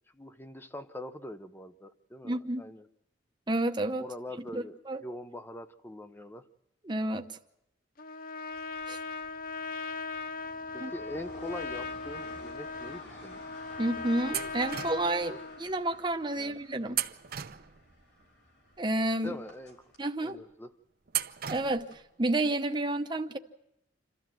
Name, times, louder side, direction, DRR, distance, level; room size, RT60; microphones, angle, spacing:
voice 1, 0.1-2.9 4.0-6.5 10.7-13.4 16.3-16.6 19.2-19.9 20.2-20.7, left 1 dB, 10° left, 11 dB, 0.8 m, -43 dB
voice 2, 2.2-2.6 3.5-4.1 4.5-5.0 6.8-7.3 8.9-9.0 10.8-10.9 13.8-17.0 18.8-19.4 20.0-20.4 21.5-23.4, right 1 dB, 25° right, 6 dB, 0.9 m, -30 dB
Trumpet, 8.0-15.6, left 4 dB, 50° left, 0.7 m, -39 dB
sound 1, 8.5-20.0, left 1 dB, 65° left, 5.0 m, -52 dB
sound 2, 14.3-15.2 16.9-18.0 21.1-22.0, right 11 dB, 55° right, 0.7 m, -35 dB
27.5 x 13.5 x 7.5 m, 0.86 s
head